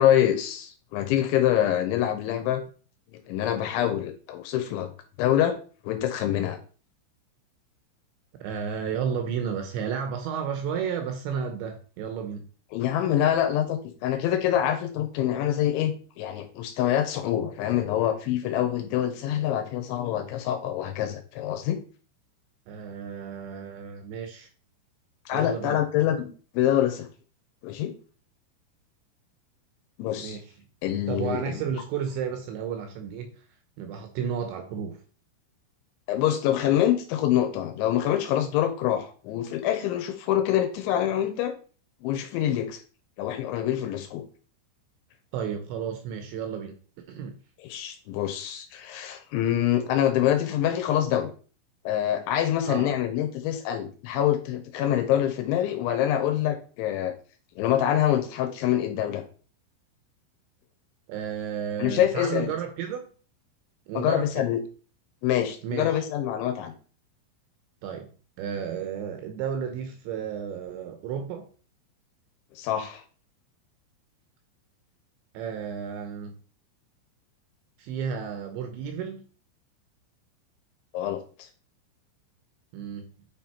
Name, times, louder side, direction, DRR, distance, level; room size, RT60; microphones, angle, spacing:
voice 1, 0.0-2.6 3.1-4.9 5.2-5.5 5.8-6.6 12.7-21.8 25.3-26.3 26.5-27.1 27.6-27.9 30.0-30.4 30.8-31.6 36.1-41.5 42.0-42.8 43.2-44.2 47.6-51.3 51.9-57.1 57.6-59.2 61.8-62.5 63.9-64.6 65.2-66.7 72.6-73.0 80.9-81.2, left 11 dB, 80° left, 6 dB, 3.0 m, -25 dB
voice 2, 8.4-12.5 22.7-24.5 25.3-25.8 30.2-30.5 31.1-33.4 33.8-35.0 45.3-46.7 47.1-47.4 52.6-52.9 61.1-63.1 63.9-64.5 65.6-66.0 67.8-68.1 68.4-71.5 75.3-76.4 77.8-79.2 82.7-83.1, right 7 dB, 75° right, 6 dB, 2.8 m, -32 dB
9.1 x 4.1 x 4.3 m, 0.39 s
omnidirectional pair, 5.9 m